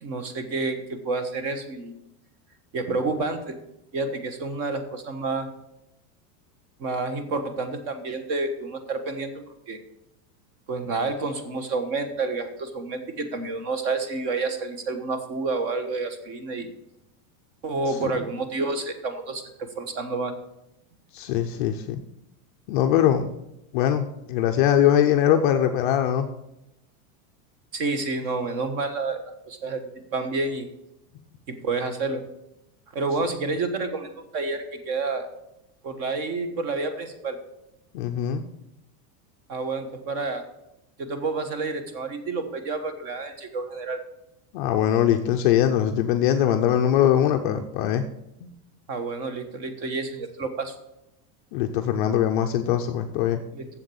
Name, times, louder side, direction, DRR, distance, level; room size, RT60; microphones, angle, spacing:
voice 1, 0.0-1.9 2.7-3.6 3.9-5.5 6.8-9.8 10.7-16.7 17.6-19.4 19.7-20.3 27.7-29.2 29.5-30.7 31.5-32.2 32.9-35.3 35.8-37.4 39.5-40.4 41.0-44.0 48.9-50.7 53.5-53.7, right 3 dB, 40° right, 9 dB, 1.3 m, -29 dB
voice 2, 21.1-22.0 22.7-23.3 23.7-26.3 37.9-38.4 44.5-48.0 48.4-48.5 51.5-53.4, left 10 dB, 35° left, 5 dB, 0.4 m, -22 dB
7.5 x 7.4 x 7.0 m, 0.87 s
supercardioid pair, 170°, 47 cm